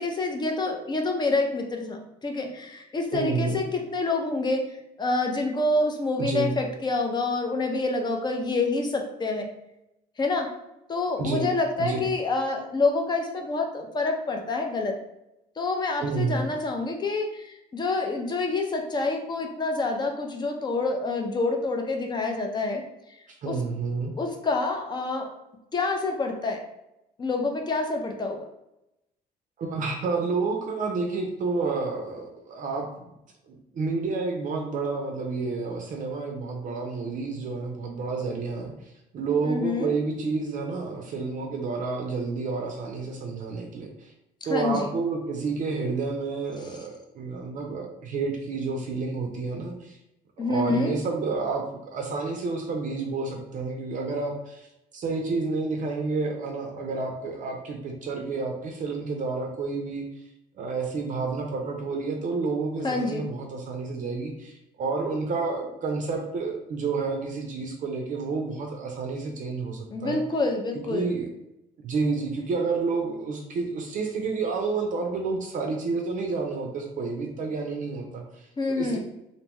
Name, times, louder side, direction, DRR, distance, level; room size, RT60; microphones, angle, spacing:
voice 1, 0.0-9.5 10.2-10.5 10.9-15.0 15.6-22.8 23.4-23.6 24.2-25.3 25.7-26.6 27.2-28.5 39.4-39.9 44.5-44.9 50.4-51.0 62.8-63.3 69.9-71.1 78.6-79.0, left 3 dB, 25° left, 3 dB, 0.5 m, -27 dB
voice 2, 3.1-3.6 6.2-6.6 11.2-11.5 11.8-12.1 16.0-16.5 23.4-24.2 29.6-32.9 33.5-44.1 44.5-50.0 50.4-60.2 60.6-70.2 70.9-71.3 71.8-79.0, right 4 dB, 50° right, 2 dB, 0.5 m, -30 dB
2.6 x 2.2 x 2.9 m, 0.89 s
cardioid pair, 110°, 17 cm